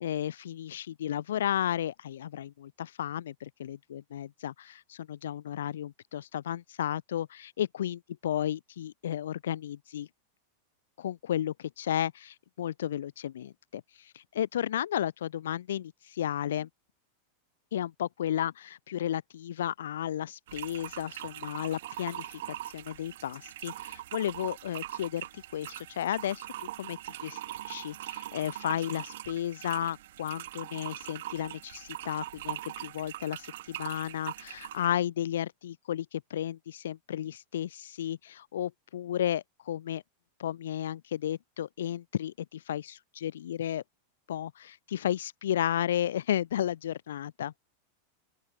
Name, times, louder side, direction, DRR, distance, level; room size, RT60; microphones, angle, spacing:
voice 1, 0.0-10.1 11.0-16.7 17.7-27.4 27.7-40.0 40.4-43.8 44.3-47.5, left 11 dB, 60° left, 0.4 m, -33 dB
sound 1, 20.5-34.9, right 14 dB, 55° right, 0.7 m, -41 dB
open air
figure-of-eight pair, 90°, 0 cm